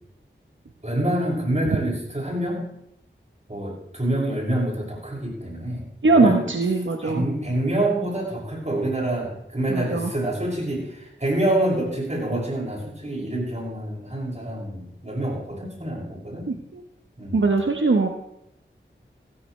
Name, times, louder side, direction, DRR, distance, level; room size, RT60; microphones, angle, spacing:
voice 1, 0.8-2.6 3.5-6.4 7.0-16.4 17.2-17.5, right 1 dB, 35° right, -3 dB, 6.3 m, -27 dB
voice 2, 6.0-7.2 9.7-10.1 16.5-16.8 17.3-18.1, right 3 dB, 75° right, 4 dB, 1.1 m, -20 dB
16.0 x 14.0 x 3.3 m, 0.80 s
wide cardioid pair, 40°, 20 cm